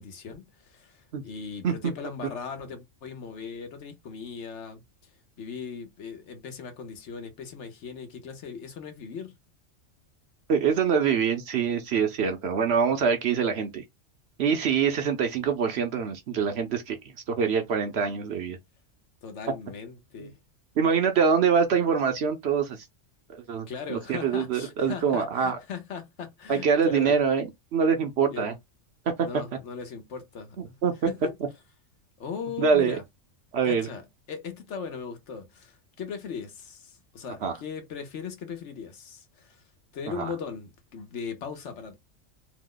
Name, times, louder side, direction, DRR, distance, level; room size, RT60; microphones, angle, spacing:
voice 1, 0.0-5.1 5.4-9.4 19.2-20.4 23.7-27.2 28.3-28.5 29.2-30.8 31.1-31.3 32.2-33.0 33.6-39.6 39.9-42.0, left 6 dB, 65° left, 1.0 m, -38 dB
voice 2, 10.5-13.8 14.4-17.0 17.3-18.6 20.2-20.3 20.8-22.8 23.3-25.6 26.5-28.5 29.2-29.3 30.8-30.9 32.6-33.0 33.5-33.9 37.4-37.6 40.2-40.3, right 6 dB, 60° right, 0.8 m, -24 dB
2.9 x 2.1 x 3.7 m
omnidirectional pair, 1.4 m